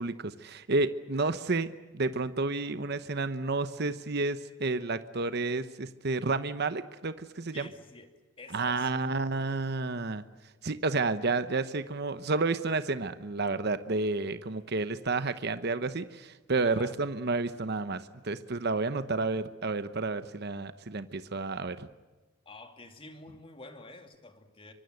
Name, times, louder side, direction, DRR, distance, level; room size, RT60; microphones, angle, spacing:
voice 1, 0.0-7.7 8.5-10.2 10.6-21.9, right 3 dB, 55° right, 11 dB, 1.0 m, -31 dB
voice 2, 7.5-8.1 8.4-9.3 16.6-16.9 22.5-24.7, left 2 dB, 25° left, 5 dB, 2.5 m, -48 dB
24.5 x 24.0 x 7.9 m, 1.3 s
head